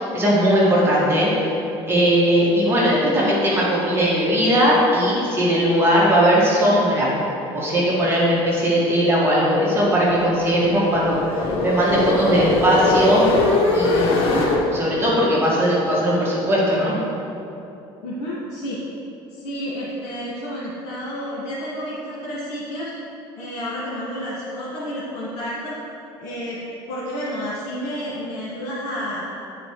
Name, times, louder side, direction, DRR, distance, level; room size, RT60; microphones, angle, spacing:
voice 1, 0.1-1.5 1.9-7.1 7.5-11.2 11.6-13.4 13.7-17.0, equal, 20° right, -6 dB, 2.0 m, -19 dB
sound 1, 9.9-14.6, left 3 dB, 60° left, 1.2 m, -21 dB
voice 2, 18.0-18.8 19.3-22.9 23.4-25.8 26.2-26.6 26.9-29.2, equal, 80° left, -7 dB, 1.8 m, -30 dB
9.9 x 4.9 x 4.8 m, 2.9 s
cardioid pair, 130°, 11 cm